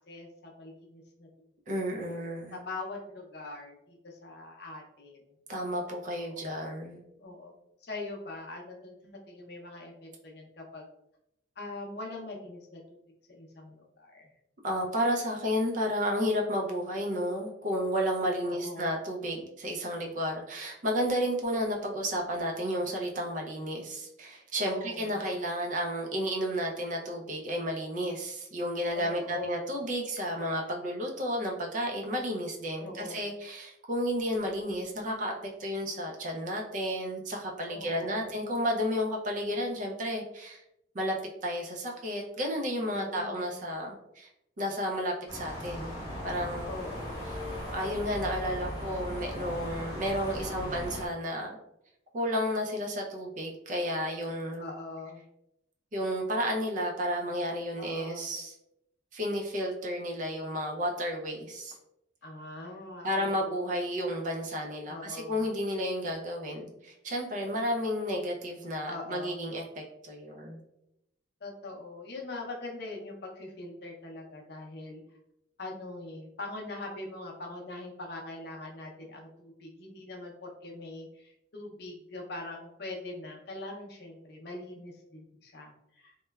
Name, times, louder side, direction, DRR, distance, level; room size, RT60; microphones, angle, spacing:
voice 1, 0.1-1.3 2.5-5.3 6.1-6.7 7.2-10.8 11.6-13.0 13.3-14.3 18.4-18.9 24.7-25.2 28.9-29.8 32.8-33.2 37.7-38.3 42.9-43.6 46.7-47.3 50.2-50.8 54.6-55.2 57.8-58.3 62.2-64.0 64.9-65.5 68.8-69.5 71.4-75.0 75.6-86.1, left 2 dB, 55° left, 0 dB, 0.5 m, -42 dB
voice 2, 1.7-2.6 5.5-7.0 14.6-40.6 40.9-41.1 41.4-44.3 44.6-46.0 46.2-46.8 47.7-51.5 52.1-54.7 55.9-58.5 59.1-61.8 63.0-70.6, equal, 40° right, 1 dB, 0.4 m, -32 dB
sound 1, 45.3-51.1, equal, 15° left, 0.9 m, -38 dB
3.0 x 2.2 x 2.2 m, 0.82 s
head